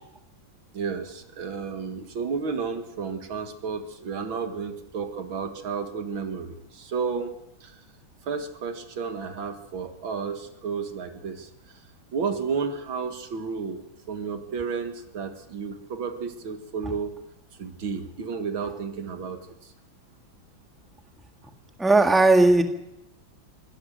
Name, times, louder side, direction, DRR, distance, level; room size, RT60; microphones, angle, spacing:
voice 1, 0.7-7.3 7.6-7.8 8.3-11.5 12.1-17.2 17.6-19.4, right 5 dB, 90° right, 7 dB, 2.6 m, -32 dB
voice 2, 21.8-22.6, right 2 dB, ahead, 5 dB, 1.4 m, -17 dB
23.5 x 17.0 x 6.6 m, 0.87 s
omnidirectional pair, 2.1 m